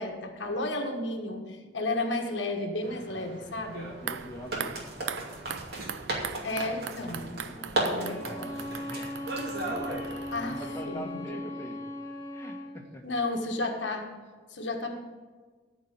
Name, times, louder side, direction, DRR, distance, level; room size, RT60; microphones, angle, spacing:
voice 1, 0.0-3.9 6.4-7.3 7.9-8.2 10.3-11.4 13.0-14.1 14.5-15.0, left 2 dB, 85° left, 3 dB, 1.4 m, -32 dB
sound 1, 2.8-10.6, right 2 dB, 60° right, 2.5 m, -36 dB
sound 2, 3.9-11.0 11.3-11.4, right 8 dB, 80° right, 0.5 m, -41 dB
voice 2, 4.0-4.8 7.0-9.2 9.7-11.8 12.3-13.0, equal, 15° left, 0 dB, 1.4 m, -43 dB
Bowed string instrument, 7.9-12.7, left 1 dB, 25° right, 3.9 m, -38 dB
13.5 x 4.7 x 8.5 m, 1.4 s
head